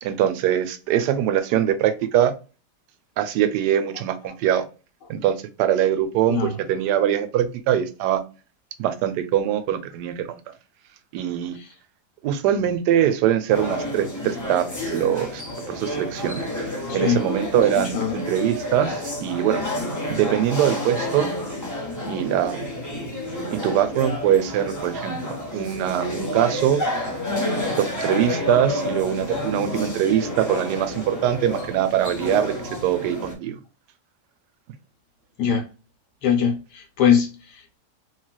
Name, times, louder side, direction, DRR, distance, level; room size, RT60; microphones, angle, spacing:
voice 1, 0.0-2.3 3.2-4.6 5.1-8.2 8.8-10.5 11.1-11.6 12.2-15.4 15.7-16.4 16.9-19.6 20.1-21.3 22.1-22.7 23.5-26.8 27.8-32.6 32.8-33.6, right 10 dB, 75° right, 1.1 m, -22 dB
sound 1, 13.5-33.3, left 1 dB, 25° left, 0.4 m, -30 dB
voice 2, 16.9-17.3 17.5-18.2 35.4-35.7 36.2-37.8, left 7 dB, 70° left, 1.3 m, -23 dB
3.1 x 2.9 x 2.2 m
omnidirectional pair, 1.9 m